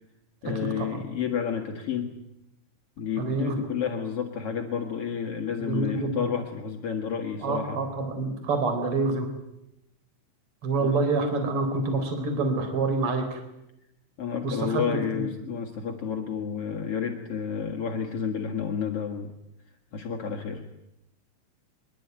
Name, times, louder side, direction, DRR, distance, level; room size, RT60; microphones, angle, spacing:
voice 1, 0.4-2.2 3.0-7.8 10.8-11.0 14.2-19.3 19.9-20.6, left 7 dB, 55° left, 2 dB, 1.7 m, -30 dB
voice 2, 3.2-3.6 5.6-6.2 7.4-9.3 10.6-13.4 14.4-14.8 15.1-15.2, right 3 dB, 30° right, 6 dB, 4.3 m, -27 dB
24.5 x 22.0 x 9.3 m, 0.85 s
omnidirectional pair, 5.5 m